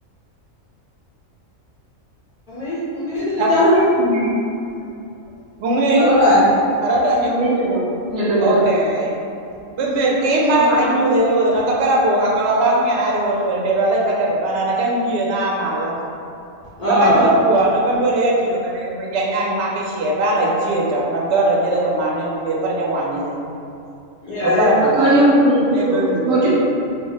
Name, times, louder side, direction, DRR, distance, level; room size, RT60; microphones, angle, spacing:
voice 1, 2.5-3.8 5.9-6.4 16.8-17.3 24.2-24.7, left 1 dB, 55° left, -11 dB, 0.4 m, -18 dB
voice 2, 3.4-4.4 5.6-6.1 6.8-7.3 8.4-9.1 9.7-16.0 16.8-23.4 24.4-25.1 25.7-26.5, right 1 dB, 65° right, -3 dB, 0.7 m, -19 dB
voice 3, 7.2-8.6 10.6-10.9 25.0-26.5, right 1 dB, 30° right, -9 dB, 0.8 m, -18 dB
2.3 x 2.1 x 3.8 m, 2.7 s
omnidirectional pair, 1.4 m